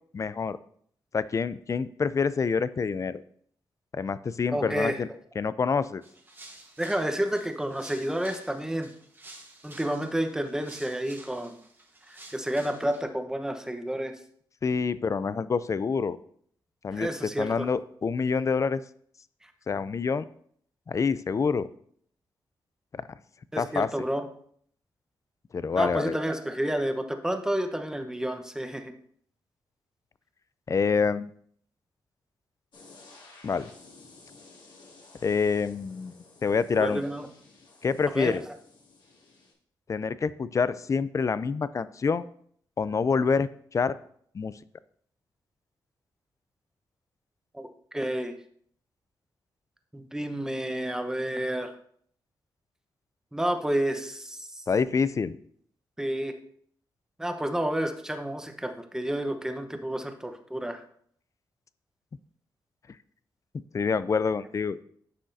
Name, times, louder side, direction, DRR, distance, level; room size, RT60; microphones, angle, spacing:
voice 1, 0.1-0.6 1.1-3.2 3.9-5.1 5.4-6.0 14.6-16.2 16.8-17.1 17.4-18.8 19.7-20.2 20.9-21.7 22.9-23.0 23.6-23.9 25.5-26.2 30.7-31.3 33.4-33.7 35.2-36.1 36.4-37.0 37.8-38.4 39.9-42.3 42.8-43.9 44.3-44.5 54.7-55.3 63.7-64.8, left 5 dB, 40° left, 16 dB, 0.4 m, -27 dB
voice 2, 4.5-5.0 6.8-8.9 9.6-11.5 12.1-14.2 16.9-17.7 19.4-19.5 23.5-24.3 25.8-28.9 36.7-37.3 38.1-38.5 47.5-48.4 49.9-51.7 53.3-54.6 56.0-56.3 57.2-60.8, right 1 dB, 5° right, 6 dB, 0.9 m, -30 dB
sound 1, 6.0-13.0, right 2 dB, 25° right, 1.2 m, -50 dB
sound 2, 32.7-39.5, left 3 dB, 70° left, 2.4 m, -54 dB
9.9 x 6.3 x 2.7 m, 0.63 s
cardioid pair, 85°, 8 cm